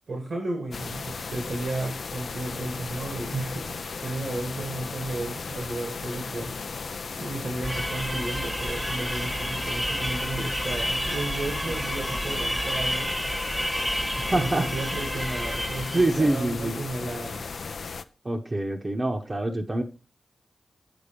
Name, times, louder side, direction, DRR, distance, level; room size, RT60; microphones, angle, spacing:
voice 1, 0.1-6.5 7.2-13.1 14.3-17.4, right 2 dB, 80° right, 1 dB, 1.7 m, -33 dB
sound 1, 0.7-18.0, left 5 dB, 75° left, 0.4 m, -36 dB
sound 2, 7.6-16.2, equal, 5° right, 0.6 m, -30 dB
voice 2, 14.3-14.7 15.9-16.8 18.2-19.8, right 2 dB, 35° right, 1 dB, 0.8 m, -25 dB
7.0 x 4.0 x 5.1 m, 0.35 s
cardioid pair, 55°, 0 cm